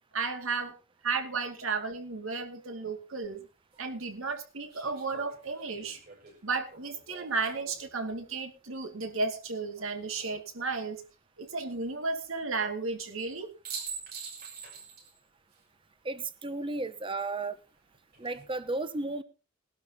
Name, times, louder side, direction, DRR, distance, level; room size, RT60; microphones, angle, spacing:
voice 1, 0.1-0.7 1.0-3.4 3.8-6.0 6.4-11.0 11.4-13.5, right 4 dB, 75° right, 6 dB, 2.4 m, -33 dB
sound 1, 3.2-3.3 4.7-7.9 9.7-10.4 13.2-13.3 13.6-15.2 15.5-15.6 17.9-18.4, right 5 dB, 45° right, 6.0 m, -45 dB
voice 2, 16.0-17.6 18.2-19.2, right 2 dB, 25° right, 13 dB, 1.0 m, -33 dB
20.5 x 12.0 x 2.9 m, 0.31 s
head